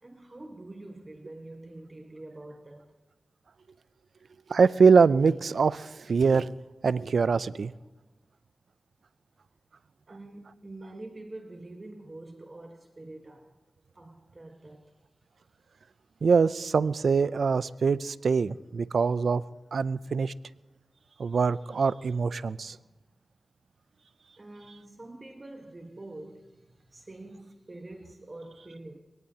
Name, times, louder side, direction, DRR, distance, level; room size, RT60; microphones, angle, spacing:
voice 1, 0.0-3.0 10.1-13.6 13.9-14.9 24.4-29.0, right 2 dB, 40° right, 1.3 m, -45 dB
voice 2, 4.5-6.6 6.8-7.7 16.2-19.4 19.7-20.3 21.2-22.8, right 5 dB, 80° right, 0.4 m, -23 dB
23.0 x 18.0 x 2.8 m
cardioid pair, 50°, 0 cm